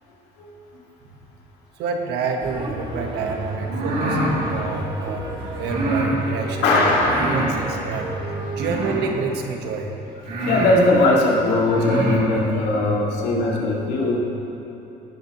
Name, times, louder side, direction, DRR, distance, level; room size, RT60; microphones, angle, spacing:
voice 1, 1.8-5.3 5.6-6.9 7.2-10.0, right 4 dB, 80° right, 3 dB, 1.4 m, -28 dB
sound 1, 2.4-8.8, right 2 dB, 30° right, 2.5 m, -31 dB
sound 2, 3.6-4.4 5.6-6.1 7.0-7.5 8.5-9.1 9.8-9.9 10.2-10.8 11.6-12.2, right 1 dB, 60° right, 2.7 m, -25 dB
voice 2, 6.6-7.4 10.4-14.2, left 2 dB, 90° left, -3 dB, 2.3 m, -19 dB
17.0 x 10.5 x 3.1 m, 3.0 s
cardioid pair, 110°, 17 cm